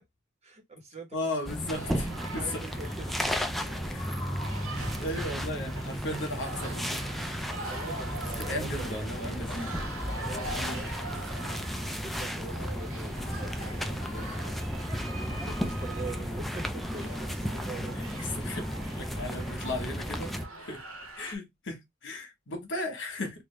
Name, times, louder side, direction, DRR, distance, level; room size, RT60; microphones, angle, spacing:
voice 1, 0.4-1.2 2.3-3.2 4.1-4.2 5.0-5.1 7.7-9.0 9.3-9.7 10.1-14.4 15.1-18.0, right 2 dB, 35° right, 1.2 m, -44 dB
voice 2, 1.1-2.6 3.8-4.2 5.0-7.0 8.4-9.8 10.6-10.8 18.4-20.8 21.2-23.3, left 1 dB, 65° left, 1.3 m, -36 dB
sound 1, 1.5-20.5, equal, ahead, 0.4 m, -34 dB
sound 2, 1.7-21.3, right 1 dB, 90° right, 1.4 m, -42 dB
3.3 x 2.5 x 3.2 m
head